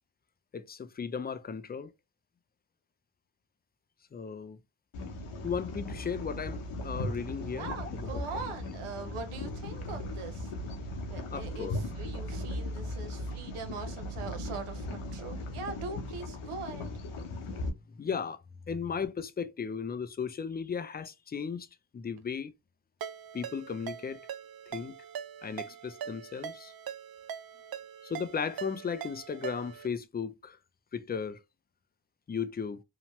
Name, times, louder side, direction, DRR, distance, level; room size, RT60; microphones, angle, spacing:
voice 1, 0.5-1.9 4.1-4.6 5.4-8.2 11.3-11.8 17.9-18.4 18.7-21.7 21.9-22.5 23.3-24.2 24.7-25.0 25.4-26.7 28.0-30.6 30.9-31.4 32.3-32.8, left 6 dB, 20° left, 0.3 m, -36 dB
sound 1, 4.9-17.7, left 1 dB, 80° left, 0.8 m, -38 dB
voice 2, 7.5-10.5 11.1-16.9, right 4 dB, 80° right, 0.8 m, -42 dB
Ringtone, 23.0-29.9, right 8 dB, 50° right, 0.5 m, -42 dB
2.9 x 2.1 x 2.9 m
supercardioid pair, 45°, 50 cm